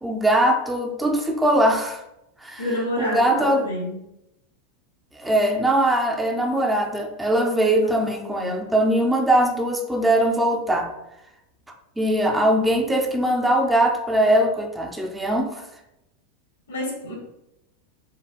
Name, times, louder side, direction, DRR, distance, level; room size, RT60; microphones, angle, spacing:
voice 1, 0.0-2.0 2.4-2.6 3.0-3.7 5.2-10.9 12.0-15.7, right 1 dB, 10° right, 3 dB, 0.4 m, -21 dB
voice 2, 2.6-4.0 7.8-8.6 16.7-17.1, left 1 dB, 75° left, -2 dB, 1.4 m, -29 dB
3.7 x 2.1 x 3.6 m, 0.87 s
figure-of-eight pair, 90°, 0 cm